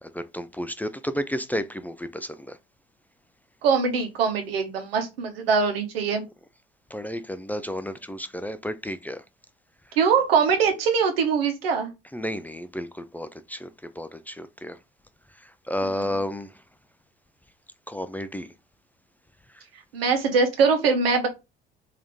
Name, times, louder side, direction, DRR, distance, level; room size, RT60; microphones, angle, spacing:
voice 1, 0.0-2.6 6.9-9.2 12.1-13.7 14.0-14.8 15.4-16.5 17.9-18.5, equal, 5° left, 0.3 m, -32 dB
voice 2, 3.6-6.2 10.0-11.9 15.8-15.9 19.9-21.3, right 5 dB, 80° right, 0.9 m, -22 dB
3.4 x 2.8 x 3.4 m
hypercardioid pair, 55°, 29 cm